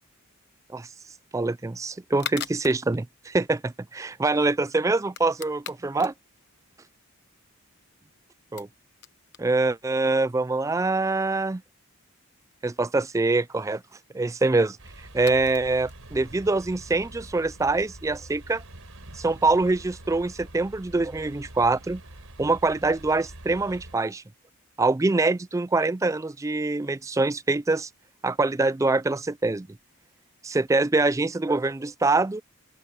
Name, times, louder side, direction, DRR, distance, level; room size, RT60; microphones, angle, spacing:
sound 1, 1.3-17.6, left 9 dB, 50° left, 1.1 m, -47 dB
voice 1, 1.3-6.1 8.5-8.7 9.4-11.6 12.6-13.8 14.1-14.8 15.1-18.6 19.1-22.0 22.4-24.2 24.8-27.9 28.2-29.7 30.4-32.4, right 3 dB, 15° right, 0.3 m, -24 dB
sound 2, 14.8-24.0, right 1 dB, 75° right, 4.1 m, -45 dB
open air
head